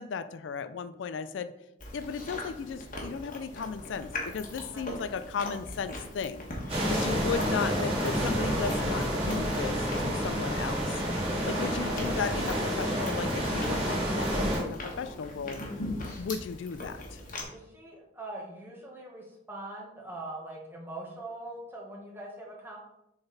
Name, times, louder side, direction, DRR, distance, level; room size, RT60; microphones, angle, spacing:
voice 1, 0.0-1.5 1.9-6.5 6.9-11.0 11.5-15.6 16.2-17.2, left 5 dB, 80° left, 12 dB, 0.4 m, -35 dB
Chewing mastication, 1.8-17.4, left 1 dB, 45° left, 1.4 m, -41 dB
voice 2, 6.7-7.1 17.5-22.8, right 2 dB, 10° right, -2 dB, 1.3 m, -42 dB
sound 1, 6.7-14.6, equal, 30° right, 2.4 m, -29 dB
6.9 x 3.9 x 4.0 m, 0.87 s
head